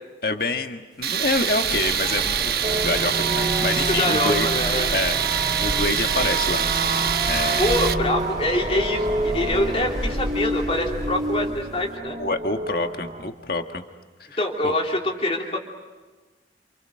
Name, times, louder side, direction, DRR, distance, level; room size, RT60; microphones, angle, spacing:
voice 1, 0.2-4.5 4.9-7.6 12.2-13.8 14.2-14.3 14.6-14.7, left 3 dB, 55° left, 5 dB, 1.7 m, -27 dB
sound 1, 1.0-11.9, equal, ahead, 4.4 m, -33 dB
Tools, 1.0-7.9, right 9 dB, 60° right, 1.0 m, -25 dB
sound 2, 2.6-13.3, right 2 dB, 35° right, 1.5 m, -29 dB
voice 2, 3.9-4.9 7.6-12.2 14.4-15.6, left 1 dB, 35° left, 0 dB, 3.2 m, -25 dB
29.0 x 28.0 x 6.5 m, 1.3 s
head